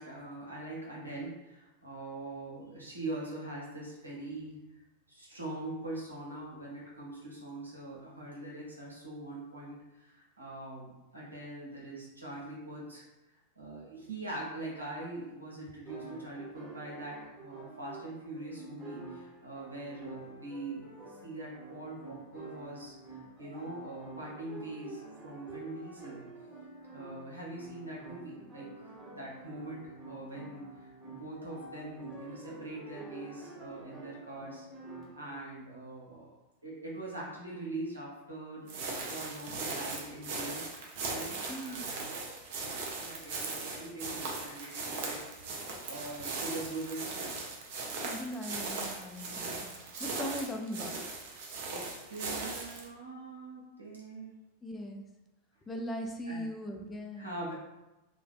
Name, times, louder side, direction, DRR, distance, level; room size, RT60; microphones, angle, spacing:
voice 1, 0.0-4.6 5.1-13.1 13.6-26.2 26.9-34.7 35.1-36.3 36.6-42.4 43.0-47.5 51.7-54.4 56.3-56.5 57.2-57.5, right 2 dB, 80° right, -5 dB, 0.8 m, -43 dB
sound 1, 15.9-35.3, right 3 dB, 10° right, 0.9 m, -48 dB
sound 2, 38.7-52.9, right 3 dB, 50° right, 0.5 m, -39 dB
voice 2, 41.5-41.8 48.0-49.7 50.0-51.0 54.6-55.0 55.7-57.4, equal, 15° left, 2 dB, 0.4 m, -39 dB
2.4 x 2.1 x 2.5 m, 0.99 s
figure-of-eight pair, 90°, 0 cm